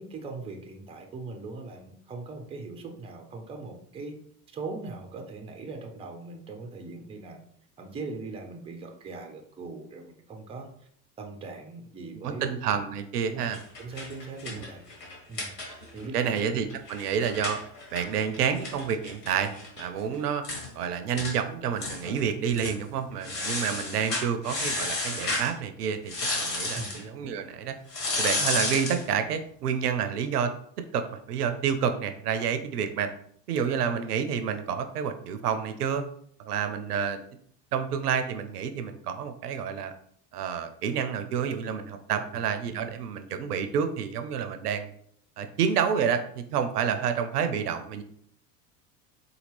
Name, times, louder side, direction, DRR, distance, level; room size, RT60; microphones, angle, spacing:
voice 1, 0.0-4.1 4.5-7.4 7.8-10.7 11.2-12.5 13.3-13.5 13.8-14.8 15.3-15.5 15.9-16.3 26.7-26.9 42.1-42.4, right 3 dB, 10° right, 3 dB, 0.5 m, -40 dB
voice 2, 12.2-13.6 14.5-14.7 15.9-17.6 17.9-20.4 20.7-27.8 28.2-30.5 30.9-33.1 33.5-36.0 36.5-37.2 37.7-39.9 40.3-44.9 45.4-48.0, right 7 dB, 75° right, 8 dB, 0.6 m, -29 dB
sound 1, 13.4-16.1 16.4-16.5 16.7-19.8 20.1-20.2 20.4-20.7 21.2-21.4 21.8-22.2 22.5-22.8 23.2-25.5 26.1-27.0 27.9-29.0, left 2 dB, 75° left, 1.4 m, -32 dB
4.3 x 2.3 x 3.3 m, 0.66 s
figure-of-eight pair, 75°, 48 cm